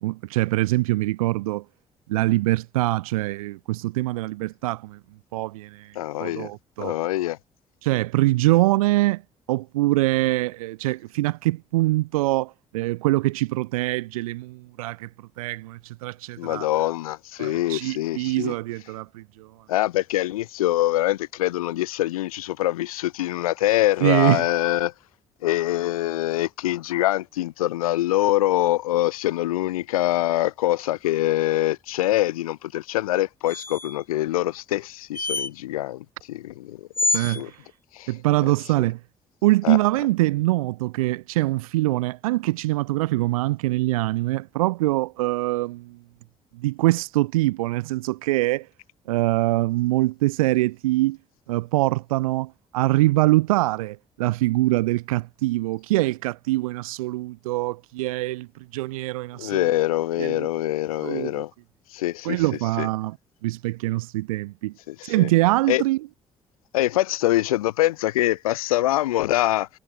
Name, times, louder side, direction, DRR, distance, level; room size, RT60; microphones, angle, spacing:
voice 1, 0.0-1.6 2.1-5.0 5.3-6.9 7.8-9.2 9.5-15.1 15.4-16.7 17.4-19.5 24.0-24.4 37.1-37.6 38.1-39.0 39.4-46.0 46.5-48.7 49.1-51.2 51.5-59.6 60.2-60.5 61.0-61.4 62.2-63.2 63.4-64.7 65.0-66.0, right 18 dB, 75° right, 1.8 m, -24 dB
voice 2, 6.0-6.5 6.8-7.4 16.4-18.5 19.7-24.9 25.4-37.5 37.9-38.1 39.6-39.8 59.4-61.5 61.9-62.4 62.8-62.9 64.9-65.3 65.7-65.8 66.7-69.7, left 15 dB, 80° left, 0.5 m, -24 dB
sound 1, 33.5-34.0 35.1-35.5 36.9-37.4, left 2 dB, 15° left, 0.7 m, -26 dB
figure-of-eight pair, 45°, 18 cm